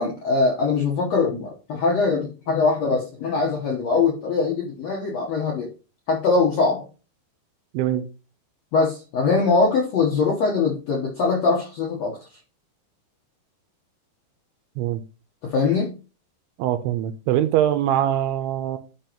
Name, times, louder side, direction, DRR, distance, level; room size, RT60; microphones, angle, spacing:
voice 1, 0.0-5.7 6.1-6.8 8.7-12.2 15.4-15.9, left 4 dB, 70° left, 1.6 m, -22 dB
voice 2, 7.7-8.1 14.8-15.0 16.6-18.8, right 11 dB, 85° right, 2.6 m, -23 dB
12.0 x 5.2 x 3.0 m
omnidirectional pair, 4.8 m